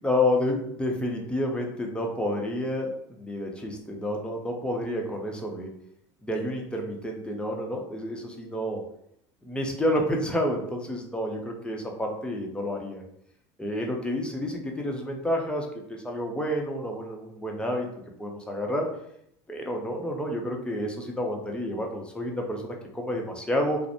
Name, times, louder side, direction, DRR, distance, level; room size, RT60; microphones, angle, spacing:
voice 1, 0.0-5.7 6.2-8.8 9.4-13.0 13.6-17.9 18.2-18.9 19.5-23.8, left 1 dB, 5° left, 1 dB, 0.6 m, -29 dB
2.5 x 2.0 x 2.8 m, 0.73 s
hypercardioid pair, 80°, 15 cm